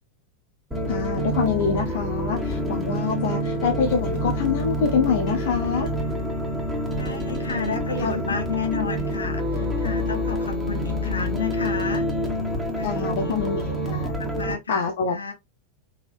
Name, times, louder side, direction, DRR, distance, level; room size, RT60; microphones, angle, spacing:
sound 1, 0.7-14.5, equal, 10° right, 1.6 m, -27 dB
voice 1, 0.9-5.9 8.0-8.2 12.8-14.1 14.7-15.2, left 6 dB, 55° left, 0.8 m, -25 dB
voice 2, 7.0-12.1 12.7-13.4 14.1-14.8 15.1-15.3, left 5 dB, 75° left, 1.0 m, -31 dB
4.7 x 3.4 x 2.5 m
figure-of-eight pair, 90°, 0 cm